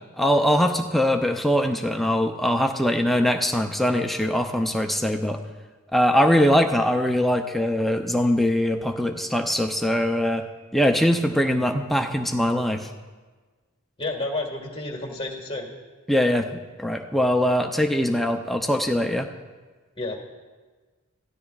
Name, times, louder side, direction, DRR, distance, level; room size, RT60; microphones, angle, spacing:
voice 1, 0.2-5.4 5.9-10.4 10.7-12.9 16.1-16.5 16.8-19.3, equal, ahead, 4 dB, 0.4 m, -22 dB
voice 2, 14.0-15.7 20.0-20.2, left 2 dB, 25° left, 0 dB, 1.6 m, -30 dB
17.0 x 12.0 x 2.4 m, 1.4 s
head